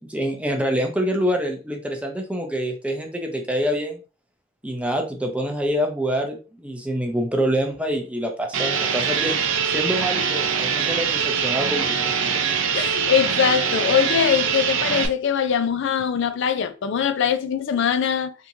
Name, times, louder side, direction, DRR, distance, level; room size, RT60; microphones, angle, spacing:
voice 1, 0.1-4.0 4.6-9.4 9.6-12.4, equal, 5° right, 0.6 m, -26 dB
sound 1, 8.5-15.1, right 6 dB, 75° right, 0.6 m, -23 dB
voice 2, 12.7-18.3, left 8 dB, 65° left, 0.4 m, -22 dB
3.5 x 3.0 x 2.6 m
head